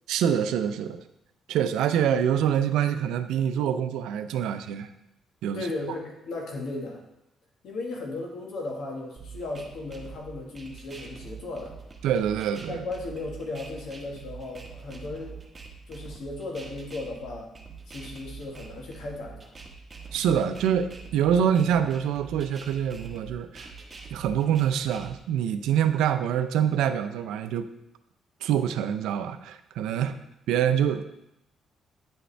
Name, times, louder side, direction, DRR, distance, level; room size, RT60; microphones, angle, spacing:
voice 1, 0.1-1.0 1.5-4.9 5.4-5.7 12.0-12.8 20.1-23.7 24.1-27.7 28.4-30.1 30.5-31.0, right 9 dB, 90° right, 10 dB, 0.4 m, -25 dB
voice 2, 5.5-7.0 7.6-11.8 12.7-15.4 15.9-17.5 17.9-19.5 29.9-30.1, left 2 dB, 75° left, 0 dB, 1.6 m, -36 dB
sound 1, 9.2-25.2, right 5 dB, 30° right, 1.2 m, -44 dB
8.9 x 5.2 x 3.3 m, 0.85 s
cardioid pair, 90°, 0 cm